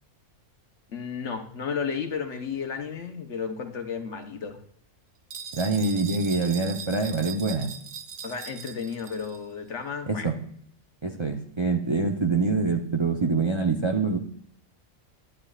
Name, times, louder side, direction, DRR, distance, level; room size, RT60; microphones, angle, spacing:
voice 1, 0.9-4.6 8.2-10.3, left 6 dB, 65° left, 5 dB, 1.3 m, -33 dB
sound 1, 5.3-9.4, right 6 dB, 60° right, 0.9 m, -40 dB
voice 2, 5.5-7.7 10.1-10.4 11.0-14.2, right 4 dB, 30° right, 2 dB, 0.6 m, -25 dB
11.0 x 10.0 x 2.4 m, 0.63 s
omnidirectional pair, 1.3 m